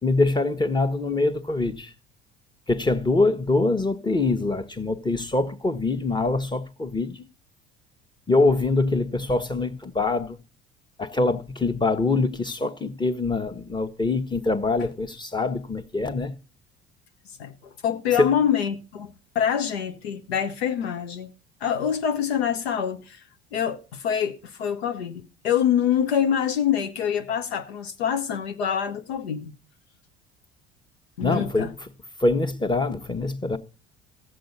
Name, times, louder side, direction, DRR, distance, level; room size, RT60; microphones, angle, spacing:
voice 1, 0.0-1.9 2.7-7.2 8.3-10.4 11.0-16.3 18.2-18.3 31.2-31.9 32.2-33.6, left 3 dB, 15° left, 1.1 m, -24 dB
voice 2, 17.4-21.3 21.6-23.2 23.5-29.5 31.2-31.7, left 8 dB, 75° left, 0.8 m, -25 dB
14.5 x 7.6 x 4.1 m
figure-of-eight pair, 60°, 31 cm